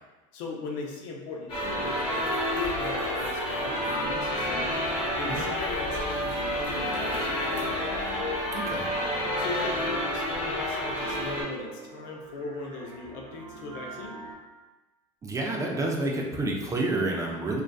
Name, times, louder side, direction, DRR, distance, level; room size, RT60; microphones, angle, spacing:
voice 1, 0.3-4.7 5.2-7.9 9.4-14.2, left 3 dB, 70° left, 1 dB, 0.5 m, -38 dB
sound 1, 1.5-11.4, equal, 30° left, 1.0 m, -29 dB
sound 2, 3.7-14.3, right 1 dB, 65° right, 0.6 m, -45 dB
voice 2, 8.5-8.9 15.2-17.6, right 2 dB, 20° right, 0 dB, 0.3 m, -29 dB
2.5 x 2.2 x 2.2 m, 1.2 s
supercardioid pair, 100°, 17 cm